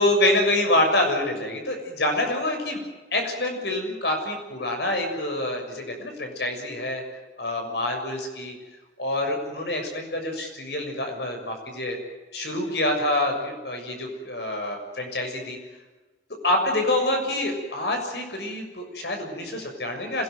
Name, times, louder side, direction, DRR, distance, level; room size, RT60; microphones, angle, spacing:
voice 1, 0.0-2.8 3.1-7.0 7.4-8.5 9.0-12.0 12.3-15.6 16.4-20.2, left 1 dB, 65° left, 4 dB, 6.8 m, -26 dB
26.0 x 18.5 x 9.4 m, 1.2 s
head